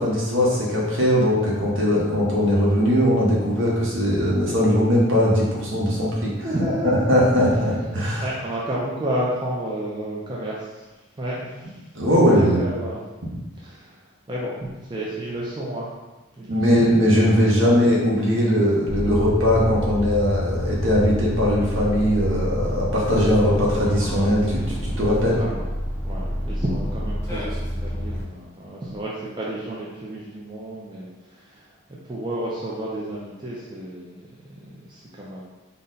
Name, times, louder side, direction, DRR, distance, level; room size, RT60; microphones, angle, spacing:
voice 1, 0.0-6.3 7.1-8.3 11.9-12.7 16.5-25.4, equal, 65° right, -5 dB, 1.0 m, -20 dB
voice 2, 6.4-7.1 7.9-10.9 11.2-12.1 12.3-13.0 13.3-15.9 16.4-17.9 25.3-25.7 26.0-35.4, right 1 dB, 20° right, -6 dB, 0.4 m, -32 dB
sound 1, 18.9-28.2, equal, 15° left, 0.6 m, -28 dB
3.9 x 2.1 x 3.8 m, 1.1 s
head